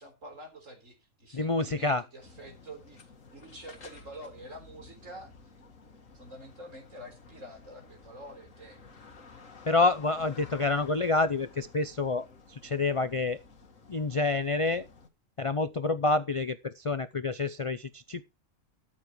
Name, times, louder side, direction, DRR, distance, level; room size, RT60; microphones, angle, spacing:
voice 1, 0.0-5.5 6.1-9.1, right 1 dB, 65° right, 4.3 m, -48 dB
voice 2, 1.3-2.0 9.6-13.4 13.9-14.9 15.4-18.2, left 3 dB, 45° left, 0.4 m, -28 dB
sound 1, 2.2-15.1, left 4 dB, 70° left, 2.0 m, -53 dB
13.5 x 10.0 x 3.1 m
omnidirectional pair, 1.4 m